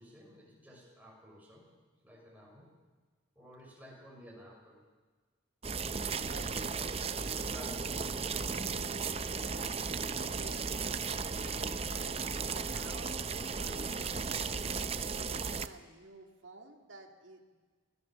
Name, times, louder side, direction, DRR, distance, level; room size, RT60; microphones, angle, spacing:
voice 1, 0.0-1.7 2.0-2.7 3.4-4.8 6.7-8.3, equal, 10° right, -2 dB, 6.0 m, -53 dB
sound 1, 5.6-15.7, right 5 dB, 30° right, 0.6 m, -35 dB
voice 2, 6.2-8.0 8.3-9.7 10.1-12.2 12.5-13.2 13.5-14.7 15.0-17.5, right 2 dB, 75° right, 1 dB, 2.1 m, -52 dB
24.5 x 18.0 x 7.4 m, 1.4 s
head